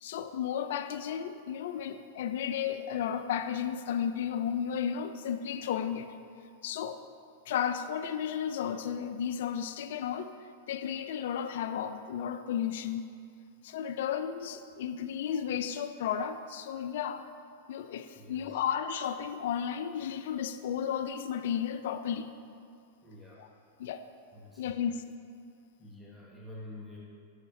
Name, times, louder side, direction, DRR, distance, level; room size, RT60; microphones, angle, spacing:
voice 1, 0.0-6.1 6.6-7.0 7.5-10.3 10.7-13.0 13.6-17.3 17.7-22.3 23.4-23.5 23.8-24.0 24.6-25.0, left 8 dB, 65° left, 0.3 m, -33 dB
voice 2, 18.1-18.6 23.0-23.4 24.3-24.8 25.8-27.0, left 2 dB, ahead, 1.0 m, -48 dB
8.8 x 6.5 x 2.7 m
hypercardioid pair, 110°, 0 cm